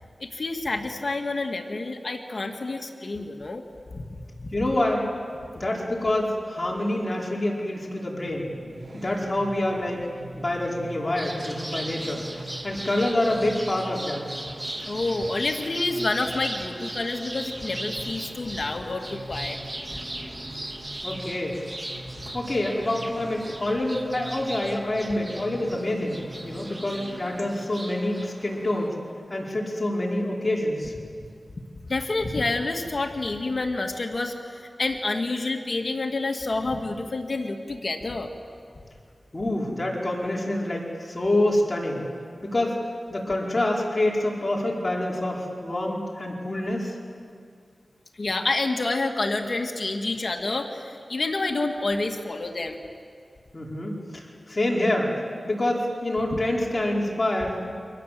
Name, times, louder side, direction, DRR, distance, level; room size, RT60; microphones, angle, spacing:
voice 1, 0.2-3.6 3.9-4.5 14.9-19.6 31.9-38.3 48.2-52.8 56.3-56.4, left 2 dB, 60° left, 3 dB, 2.1 m, -28 dB
voice 2, 4.5-5.1 5.5-8.5 8.9-10.0 10.3-14.2 21.0-21.6 22.3-29.0 29.3-30.9 39.3-42.0 42.4-42.8 43.1-47.0 53.5-55.1 55.4-57.7, left 1 dB, 35° left, -2 dB, 5.0 m, -26 dB
sound 1, 8.2-27.5, right 1 dB, 60° right, 5.8 m, -43 dB
sound 2, 11.2-28.9, right 1 dB, 30° right, 3.0 m, -38 dB
29.0 x 25.5 x 7.8 m, 2.3 s
cardioid pair, 50°, 0 cm